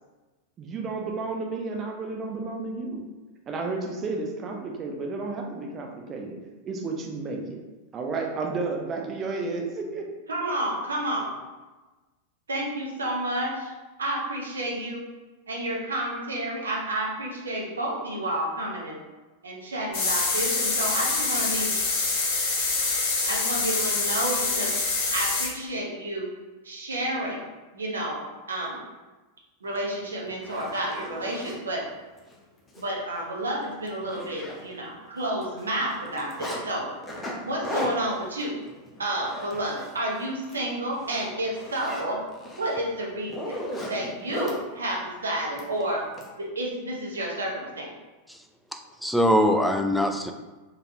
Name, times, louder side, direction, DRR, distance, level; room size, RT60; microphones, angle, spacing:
voice 1, 0.6-3.0 3.5-6.4 6.6-7.6 7.9-10.1, right 3 dB, 30° right, 1 dB, 0.7 m, -32 dB
voice 2, 10.3-11.4 12.5-13.7 14.0-15.0 15.5-19.0 19.4-21.7 23.3-24.7 25.1-26.3 26.6-27.4 27.7-28.8 29.6-31.9 32.8-36.9 37.4-38.6 39.0-42.2 42.6-43.6 43.9-46.1 46.4-47.9, right 1 dB, 70° right, -2 dB, 0.9 m, -30 dB
sound 1, 19.9-25.5, left 3 dB, 50° left, 1.0 m, -25 dB
Zipper (clothing), 29.8-29.9 30.3-31.6 32.2-32.3 32.7-32.8 33.2-33.3 33.6-34.9 35.2-36.6 37.0-40.0 40.3-40.6 40.9-44.6 45.6-46.3, equal, 20° left, 0.8 m, -36 dB
voice 3, 48.7-50.3, equal, ahead, 4 dB, 0.4 m, -23 dB
3.9 x 3.4 x 2.8 m, 1.2 s
figure-of-eight pair, 90°, 0 cm